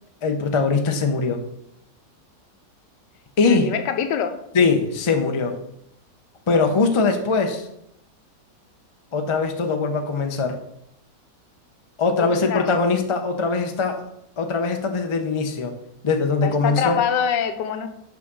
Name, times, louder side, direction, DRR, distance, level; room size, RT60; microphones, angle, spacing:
voice 1, 0.2-1.4 3.4-3.7 4.5-5.6 6.5-7.7 9.1-10.6 12.0-14.0 14.4-15.7 16.0-17.0, left 4 dB, 50° left, 5 dB, 0.3 m, -21 dB
voice 2, 3.4-4.4 12.2-12.7 16.4-17.9, left 7 dB, 85° left, 8 dB, 1.4 m, -25 dB
6.2 x 5.1 x 6.1 m, 0.78 s
omnidirectional pair, 1.9 m